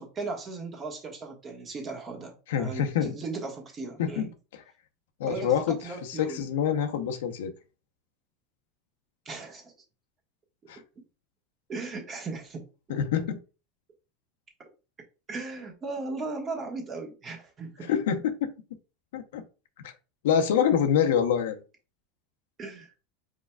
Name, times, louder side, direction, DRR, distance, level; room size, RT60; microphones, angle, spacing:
voice 1, 0.0-4.3 5.2-6.5 9.2-9.7 11.7-12.7 15.3-17.9 22.6-22.9, right 3 dB, 25° right, 1.4 m, -37 dB
voice 2, 2.5-3.1 4.0-4.3 5.2-5.7 6.0-7.5 10.7-10.8 12.9-13.4 17.9-18.5 19.1-19.4 19.8-19.9 20.2-21.6, left 8 dB, 90° left, 0.8 m, -26 dB
4.7 x 4.5 x 2.3 m
supercardioid pair, 150°, 0 cm